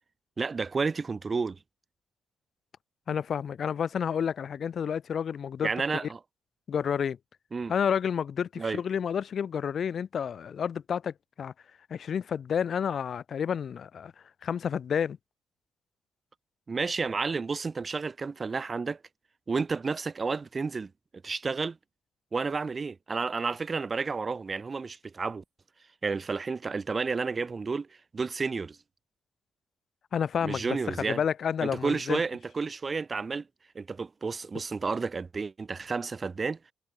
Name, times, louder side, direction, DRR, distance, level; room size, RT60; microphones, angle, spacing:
voice 1, 0.4-1.6 5.6-6.2 7.5-7.7 8.6-8.8 16.7-19.0 19.5-20.9 21.2-21.8 22.3-25.4 26.0-27.9 28.1-28.8 30.4-31.2 31.6-33.5 33.7-36.6, right 4 dB, 30° right, 0.7 m, -31 dB
voice 2, 3.1-5.7 6.7-7.2 7.7-11.5 11.9-14.1 14.4-15.2 30.1-32.2, left 7 dB, 55° left, 0.5 m, -30 dB
cardioid pair, 90°, 0 cm